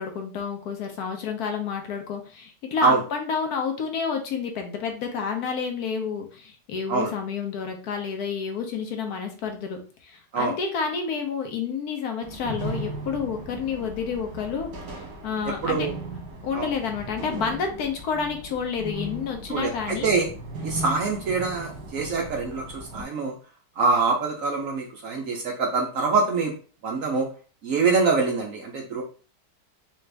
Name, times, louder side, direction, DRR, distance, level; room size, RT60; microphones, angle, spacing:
voice 1, 0.0-15.9 16.4-20.1, left 6 dB, 70° left, 4 dB, 1.1 m, -30 dB
sound 1, 12.2-23.0, right 2 dB, 85° right, 1.7 m, -37 dB
voice 2, 15.6-15.9 16.5-16.7 19.5-20.3 20.6-23.3 23.8-26.5 26.8-27.3 27.6-29.0, right 4 dB, 65° right, 1 dB, 0.9 m, -24 dB
4.2 x 2.4 x 3.2 m, 0.38 s
omnidirectional pair, 1.8 m